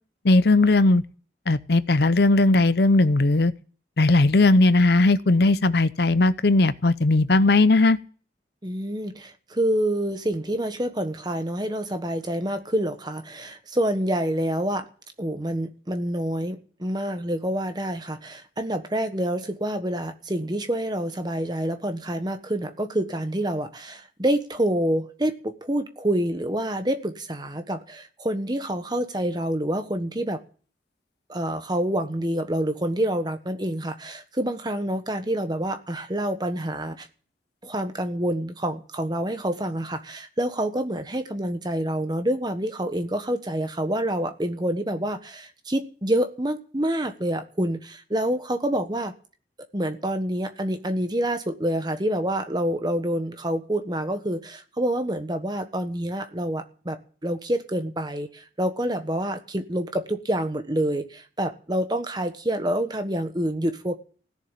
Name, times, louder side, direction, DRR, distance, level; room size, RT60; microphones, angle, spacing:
voice 1, 0.2-1.0 1.5-3.5 4.0-8.0, left 2 dB, 60° left, 0.6 m, -18 dB
voice 2, 8.6-14.9 15.2-30.4 31.3-37.1 37.6-49.1 49.7-64.0, right 1 dB, 25° right, 1.3 m, -27 dB
16.5 x 7.2 x 10.0 m
head